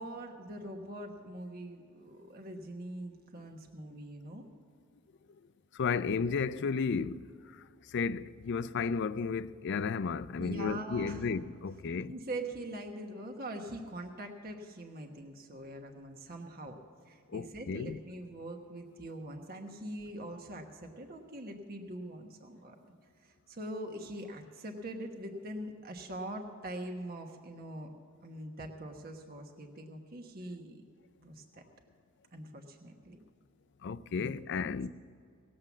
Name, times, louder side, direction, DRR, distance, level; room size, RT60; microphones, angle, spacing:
voice 1, 0.0-4.5 10.4-11.3 12.1-16.8 17.1-22.9 23.2-27.9 28.2-30.8 31.2-31.6 32.3-33.2 34.2-34.3, right 1 dB, 45° right, 1.2 m, -43 dB
voice 2, 5.7-7.3 7.9-12.1 17.3-18.0 33.8-34.9, left 5 dB, 55° left, 0.4 m, -33 dB
18.5 x 7.7 x 7.2 m
head